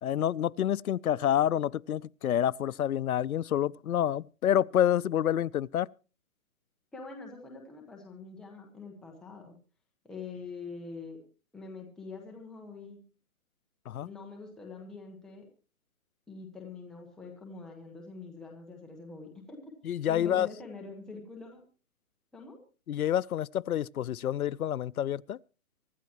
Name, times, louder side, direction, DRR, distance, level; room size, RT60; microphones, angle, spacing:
voice 1, 0.0-5.9 13.9-14.1 19.8-20.5 22.9-25.4, left 10 dB, 90° left, 0.6 m, -28 dB
voice 2, 6.9-9.6 10.0-11.2 11.5-13.0 14.0-15.5 16.3-21.6 22.3-22.6, left 4 dB, ahead, 1.2 m, -45 dB
24.5 x 12.0 x 3.0 m
hypercardioid pair, 165°, 42 cm